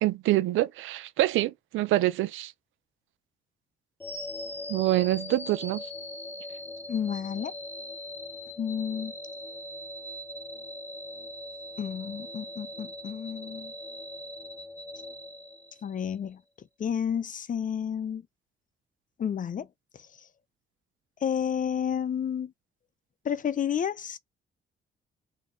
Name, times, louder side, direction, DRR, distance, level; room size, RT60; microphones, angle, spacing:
voice 1, 0.0-2.5 4.7-5.9, right 15 dB, 85° right, 0.7 m, -26 dB
sound 1, 4.0-16.1, left 1 dB, 10° left, 0.9 m, -40 dB
voice 2, 6.9-7.5 8.6-9.1 11.8-13.7 15.8-16.4 16.8-18.2 19.2-19.7 21.2-22.5 23.2-24.2, left 8 dB, 40° left, 0.6 m, -30 dB
4.1 x 2.9 x 3.4 m
cardioid pair, 90°, 20 cm